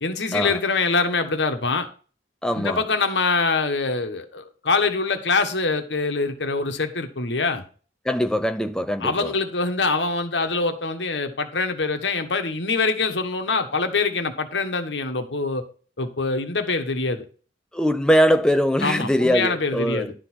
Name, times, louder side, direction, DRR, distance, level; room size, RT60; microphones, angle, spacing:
voice 1, 0.0-1.9 2.5-7.6 9.0-15.6 16.0-17.2 18.8-20.1, left 4 dB, 75° left, 1.3 m, -24 dB
voice 2, 2.4-2.8 8.1-9.3 17.7-20.1, equal, 5° left, 0.4 m, -21 dB
11.0 x 3.9 x 6.2 m
head